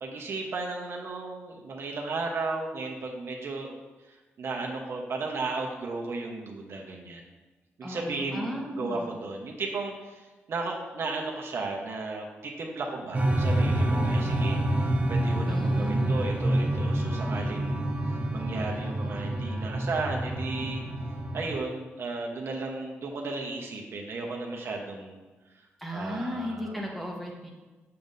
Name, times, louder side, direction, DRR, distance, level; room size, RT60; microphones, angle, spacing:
voice 1, 0.0-3.7 4.4-7.2 7.8-17.9 18.3-20.8 21.3-25.2 25.9-26.7, right 3 dB, 65° right, 1 dB, 1.0 m, -35 dB
voice 2, 7.8-9.2 15.5-16.3 25.8-27.5, equal, ahead, -1 dB, 1.4 m, -35 dB
sound 1, 13.1-21.6, right 1 dB, 30° right, 0.8 m, -27 dB
7.0 x 6.8 x 2.7 m, 1.2 s
cardioid pair, 85°, 5 cm